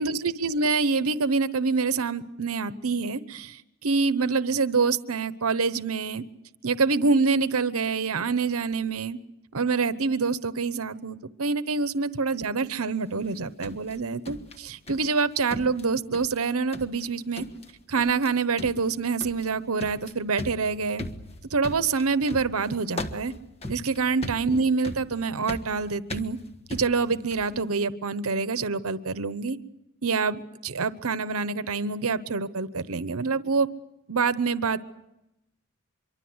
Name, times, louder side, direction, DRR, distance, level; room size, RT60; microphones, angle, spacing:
voice 1, 0.0-6.2 6.6-9.2 9.5-17.4 17.9-21.0 21.5-23.3 23.7-26.4 26.7-29.6 30.0-33.7 34.1-34.8, right 4 dB, 80° right, 13 dB, 1.0 m, -26 dB
sound 1, 13.2-15.2 15.5-16.4 16.7-17.1 17.4-17.7 18.0-18.3 18.6-27.6, left 1 dB, 30° left, 1.4 m, -39 dB
25.0 x 23.5 x 8.0 m, 0.89 s
head